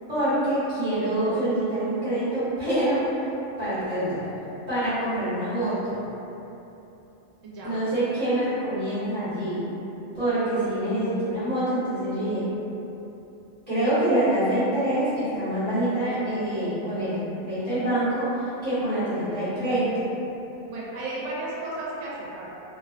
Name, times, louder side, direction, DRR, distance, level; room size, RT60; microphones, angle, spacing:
voice 1, 0.1-3.0 3.6-4.3 4.7-6.0 7.6-9.6 10.1-12.5 13.7-19.9, right 1 dB, 35° right, -17 dB, 1.1 m, -26 dB
voice 2, 7.4-7.8 20.7-22.5, right 2 dB, 75° right, -6 dB, 0.9 m, -34 dB
2.6 x 2.2 x 2.4 m, 3.0 s
omnidirectional pair, 1.4 m